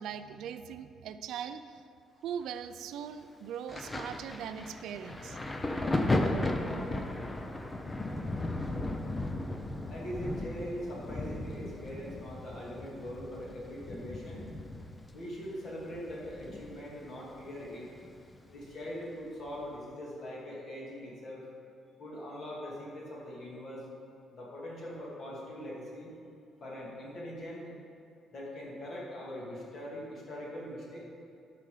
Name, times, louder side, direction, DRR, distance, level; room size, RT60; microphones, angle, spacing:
voice 1, 0.0-1.8 2.2-5.4, right 8 dB, 75° right, 10 dB, 0.4 m, -40 dB
Thunder, 3.7-17.0 17.3-18.7 19.5-19.7, left 2 dB, 15° left, 0.6 m, -36 dB
voice 2, 9.9-14.5 15.1-17.9 18.5-21.4 22.0-23.8 24.3-26.1 26.6-27.6 28.3-31.0, equal, 40° left, -4 dB, 2.3 m, -42 dB
11.5 x 5.8 x 5.0 m, 2.6 s
cardioid pair, 165°, 0 cm